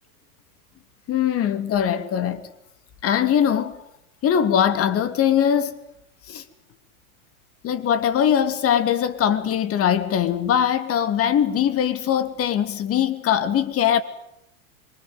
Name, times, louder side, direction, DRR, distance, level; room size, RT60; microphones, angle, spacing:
voice 1, 1.1-2.4 3.0-3.8 4.2-5.7 6.3-6.4 7.6-14.0, left 9 dB, 30° left, 2.9 m, -21 dB
26.0 x 25.0 x 8.1 m
hypercardioid pair, 120°, 43 cm